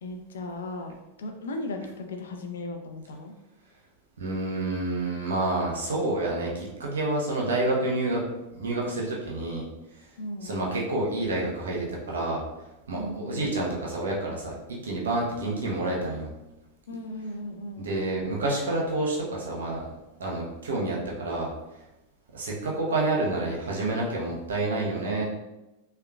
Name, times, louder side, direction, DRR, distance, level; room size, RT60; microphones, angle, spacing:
voice 1, 0.0-3.3 10.2-10.7 12.9-13.7 16.9-18.0, left 2 dB, 65° left, 5 dB, 0.5 m, -37 dB
voice 2, 4.2-8.2 8.5-9.7 9.9-10.1 10.4-12.4 12.9-16.3 17.8-19.9 20.2-21.5 22.3-25.2, right 2 dB, 65° right, -3 dB, 0.9 m, -28 dB
3.7 x 3.3 x 2.3 m, 0.96 s
figure-of-eight pair, 90°, 0 cm